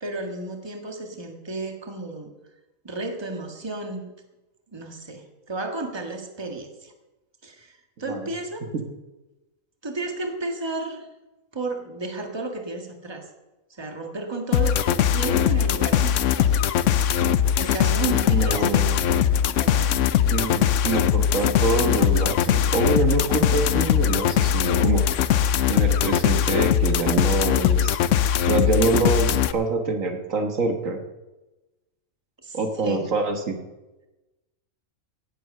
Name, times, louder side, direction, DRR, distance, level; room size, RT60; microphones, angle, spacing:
voice 1, 0.0-2.3 2.8-4.0 4.7-6.9 7.4-8.6 9.8-11.1 11.5-13.3 13.7-16.5 17.6-19.1 19.5-20.1 32.4-33.0, right 2 dB, 20° right, 3 dB, 1.7 m, -33 dB
sound 1, 14.5-29.5, left 9 dB, 70° left, 0.9 m, -21 dB
voice 2, 18.0-19.0 20.3-25.0 25.7-28.0 28.5-31.0 32.5-33.6, right 3 dB, 70° right, 5 dB, 1.7 m, -25 dB
17.5 x 8.0 x 6.6 m, 1.1 s
omnidirectional pair, 1.5 m